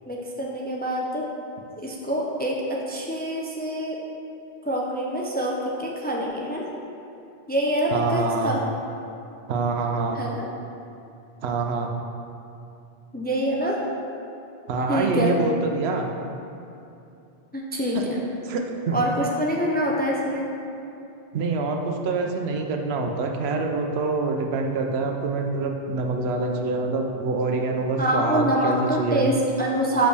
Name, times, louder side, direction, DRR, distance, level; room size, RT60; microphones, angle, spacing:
voice 1, 0.1-1.2 1.8-2.6 2.9-4.0 4.6-6.7 7.5-8.8 10.1-10.5 13.1-13.8 14.9-15.3 17.5-18.2 18.9-20.5 28.0-30.1, equal, 15° left, -2 dB, 0.3 m, -25 dB
voice 2, 7.9-8.5 9.5-10.2 11.4-11.9 14.7-16.1 18.5-19.0 21.3-29.3, right 3 dB, 85° right, 3 dB, 0.9 m, -26 dB
6.1 x 5.1 x 3.3 m, 2.7 s
omnidirectional pair, 1.0 m